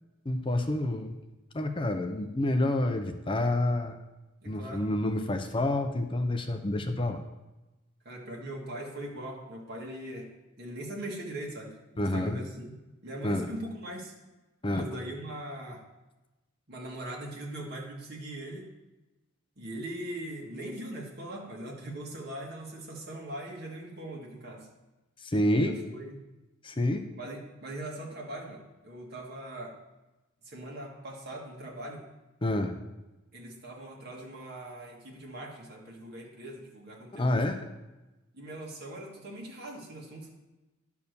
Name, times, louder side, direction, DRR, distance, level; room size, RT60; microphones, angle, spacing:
voice 1, 0.3-1.2 1.5-4.0 4.5-7.2 12.0-12.4 13.2-13.5 14.6-14.9 25.2-25.8 26.6-27.1 32.4-32.7 37.1-37.6, left 1 dB, 25° left, 6 dB, 0.6 m, -28 dB
voice 2, 4.4-4.8 8.0-10.3 10.6-12.7 13.0-14.1 14.7-15.8 16.7-18.7 19.6-24.7 25.6-26.2 27.1-29.7 30.5-32.0 33.3-37.4 38.3-40.3, right 1 dB, 55° right, -2 dB, 2.4 m, -41 dB
10.5 x 4.8 x 6.9 m, 1.1 s
head